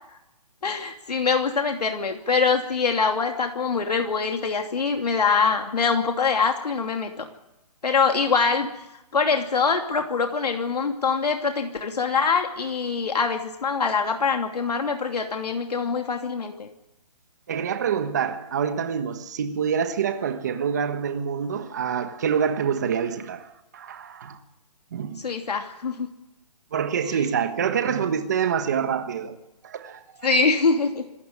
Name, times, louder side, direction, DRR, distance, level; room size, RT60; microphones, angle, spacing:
voice 1, 0.6-7.3 7.8-8.7 9.1-16.7 25.2-26.1 27.0-27.2 30.2-31.0, left 5 dB, 80° left, 2.8 m, -24 dB
voice 2, 17.5-24.4 24.9-25.3 26.7-29.4 29.6-30.3, right 7 dB, 25° right, 1.4 m, -26 dB
26.0 x 14.0 x 9.8 m
hypercardioid pair, 180°, 20 cm